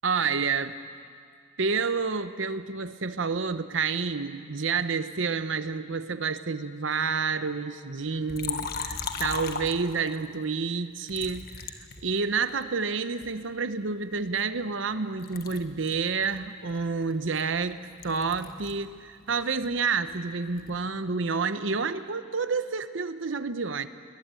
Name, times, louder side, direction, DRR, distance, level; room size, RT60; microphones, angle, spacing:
voice 1, 0.0-0.8 1.6-17.8 18.0-23.9, right 5 dB, 70° right, 11 dB, 0.9 m, -29 dB
Liquid, 8.3-10.3 11.1-12.6 13.2-14.9 15.2-18.9 19.2-20.8, left 5 dB, 50° left, 1.5 m, -38 dB
21.5 x 21.5 x 9.1 m, 2.1 s
head